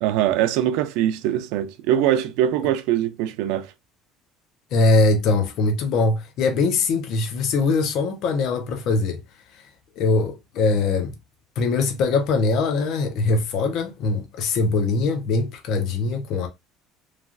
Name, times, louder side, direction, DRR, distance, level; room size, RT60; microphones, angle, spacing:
voice 1, 0.0-3.7, right 11 dB, 80° right, 0.3 m, -22 dB
voice 2, 4.7-9.2 9.5-9.7 10.0-11.1 11.6-16.5, left 3 dB, 55° left, 0.5 m, -22 dB
3.1 x 2.3 x 2.4 m
cardioid pair, 160°, 0 cm